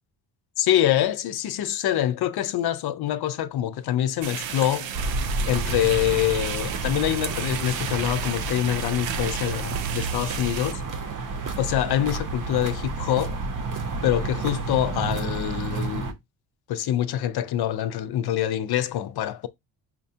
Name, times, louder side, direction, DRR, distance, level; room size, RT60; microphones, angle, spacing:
voice 1, 0.6-4.9 5.5-10.8 11.6-13.4 14.0-16.1 16.7-19.5, left 12 dB, 60° left, 0.5 m, -25 dB
sound 1, 4.2-10.7, right 9 dB, 90° right, 0.7 m, -34 dB
sound 2, 4.9-16.1, right 3 dB, 45° right, 0.6 m, -30 dB
5.7 x 2.2 x 2.7 m
cardioid pair, 145°, 44 cm